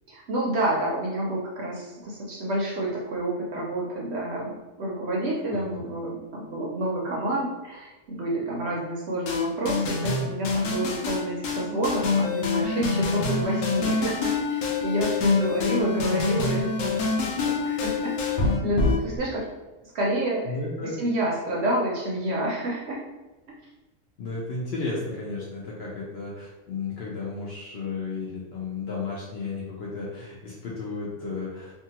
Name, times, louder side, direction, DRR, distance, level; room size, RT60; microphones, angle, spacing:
voice 1, 0.1-18.3 18.6-19.4 19.9-23.0, right 1 dB, 65° right, -3 dB, 0.7 m, -29 dB
sound 1, 9.3-19.2, left 4 dB, 90° left, 1.0 m, -26 dB
voice 2, 20.5-21.0 24.2-31.7, left 3 dB, 65° left, -4 dB, 0.6 m, -33 dB
2.6 x 2.4 x 2.8 m, 1.1 s
omnidirectional pair, 1.4 m